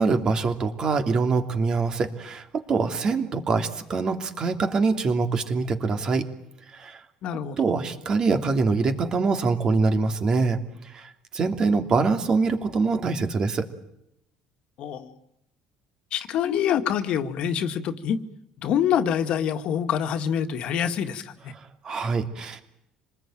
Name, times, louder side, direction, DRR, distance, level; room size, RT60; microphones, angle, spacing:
voice 1, 0.0-6.2 6.7-7.0 7.6-10.6 10.9-11.1 11.3-13.6 21.8-22.6, right 4 dB, 35° right, 6 dB, 3.0 m, -24 dB
voice 2, 7.2-7.6 14.8-15.1 16.1-18.2 18.6-21.5, left 8 dB, 55° left, 7 dB, 2.0 m, -26 dB
27.0 x 20.0 x 9.2 m, 0.81 s
cardioid pair, 120°, 2 cm